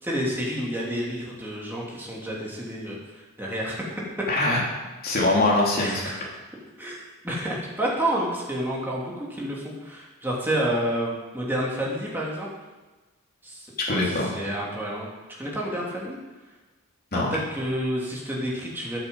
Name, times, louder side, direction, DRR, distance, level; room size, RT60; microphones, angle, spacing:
voice 1, 0.0-3.8 5.8-6.2 6.8-12.5 13.4-15.1 15.4-16.2 17.1-19.0, right 1 dB, 10° right, -4 dB, 2.9 m, -29 dB
voice 2, 4.3-4.6 5.0-6.0 13.9-14.3 17.1-17.4, left 2 dB, 45° left, -3 dB, 3.1 m, -22 dB
9.7 x 9.2 x 7.8 m, 1.2 s
head